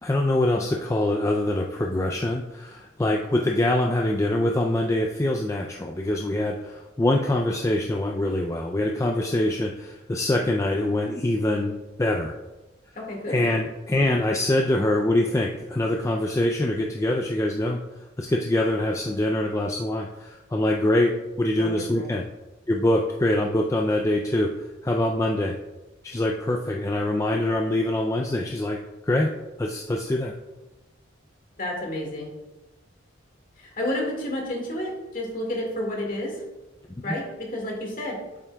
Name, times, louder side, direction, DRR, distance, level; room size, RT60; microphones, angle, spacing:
voice 1, 0.0-11.7 12.0-12.3 13.3-17.8 18.2-22.2 22.7-24.5 24.8-25.5 26.0-28.8 29.0-29.3 29.6-30.3, left 1 dB, 15° left, 1 dB, 0.4 m, -24 dB
voice 2, 13.0-13.4 21.6-22.0 31.6-32.3 33.6-36.4 37.0-38.2, left 1 dB, 45° left, -1 dB, 1.9 m, -30 dB
8.2 x 7.3 x 2.3 m, 1.1 s
head